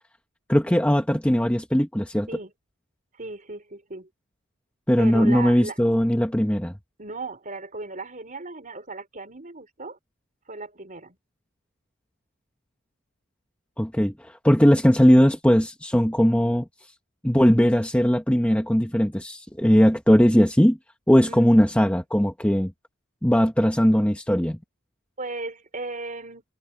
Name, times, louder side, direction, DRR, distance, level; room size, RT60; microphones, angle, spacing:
voice 1, 0.5-2.3 4.9-6.7 13.8-16.7 17.2-20.8 21.1-22.7 23.2-24.6, equal, 5° left, 1.1 m, -19 dB
voice 2, 3.1-4.1 5.0-5.8 7.0-10.0 10.5-11.2 21.3-21.5 25.2-26.4, right 3 dB, 35° right, 4.5 m, -36 dB
head